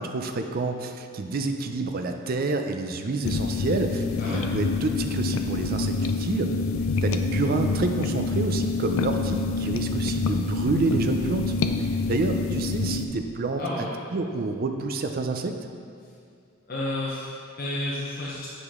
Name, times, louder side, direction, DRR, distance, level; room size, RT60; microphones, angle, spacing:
voice 1, 0.0-6.6 7.0-11.5 11.8-13.6 14.1-15.6, right 3 dB, 40° right, 5 dB, 0.4 m, -28 dB
sound 1, 3.2-13.1, left 4 dB, 65° left, 0.3 m, -27 dB
voice 2, 13.6-13.9 16.7-18.5, left 1 dB, 40° left, -7 dB, 0.8 m, -31 dB
8.1 x 5.0 x 3.6 m, 2.4 s
head